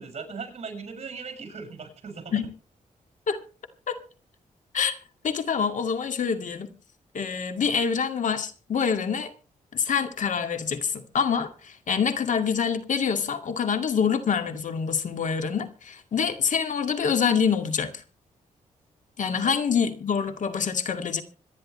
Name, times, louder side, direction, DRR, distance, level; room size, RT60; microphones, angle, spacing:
voice 1, 0.0-2.4 19.3-19.5, right 5 dB, 50° right, 6.3 m, -38 dB
voice 2, 5.2-6.7 7.1-9.3 9.7-18.0 19.2-21.2, left 6 dB, 65° left, 2.2 m, -26 dB
26.0 x 10.5 x 3.2 m
cardioid pair, 95°, 14 cm